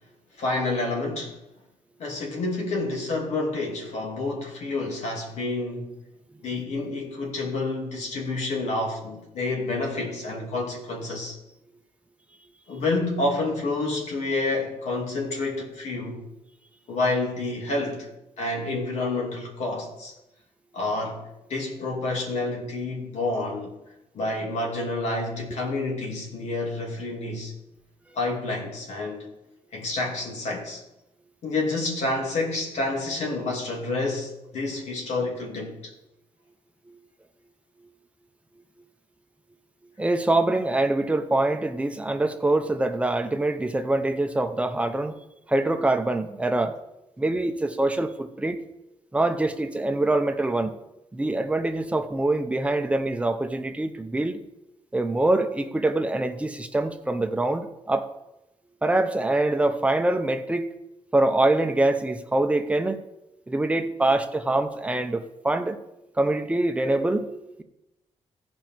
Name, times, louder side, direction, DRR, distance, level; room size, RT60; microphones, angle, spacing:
voice 1, 0.4-1.4 2.0-5.9 6.4-11.4 12.7-16.2 16.9-18.1 18.4-20.1 20.7-21.2 21.5-23.8 24.1-27.5 28.1-29.3 29.7-30.8 31.4-35.8, left 2 dB, 80° left, -1 dB, 2.7 m, -29 dB
voice 2, 40.0-45.2 45.5-46.8 47.2-48.6 49.1-50.8 51.1-54.4 54.9-58.1 58.8-60.7 61.1-63.0 63.5-65.8 66.2-67.6, right 2 dB, 10° right, 7 dB, 0.6 m, -24 dB
15.5 x 5.2 x 4.6 m, 0.91 s
wide cardioid pair, 180°, 11 cm